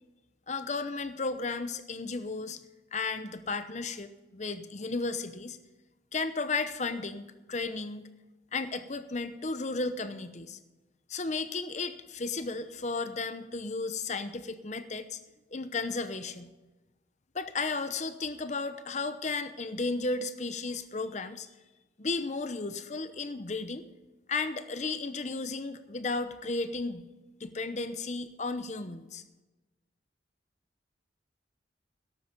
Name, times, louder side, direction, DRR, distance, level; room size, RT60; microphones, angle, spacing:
voice 1, 0.5-2.6 2.9-5.6 6.1-8.1 8.5-10.6 11.1-15.2 15.5-16.5 17.3-21.5 22.0-23.8 24.3-27.1 27.4-29.2, left 3 dB, 40° left, 11 dB, 0.8 m, -34 dB
13.0 x 12.0 x 5.2 m, 1.1 s
head